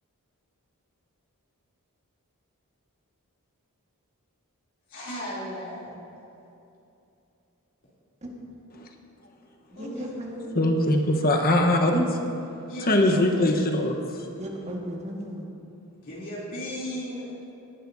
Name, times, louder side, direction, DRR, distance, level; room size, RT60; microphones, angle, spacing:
voice 1, 4.9-6.1 9.7-10.2 12.7-13.5 16.0-17.2, equal, 60° left, -8 dB, 3.1 m, -36 dB
voice 2, 9.7-10.5 14.4-15.5, equal, 30° right, -1 dB, 1.7 m, -35 dB
voice 3, 10.6-12.1 12.9-14.0, left 1 dB, 40° left, 3 dB, 1.1 m, -21 dB
19.0 x 11.5 x 2.7 m, 2.8 s
head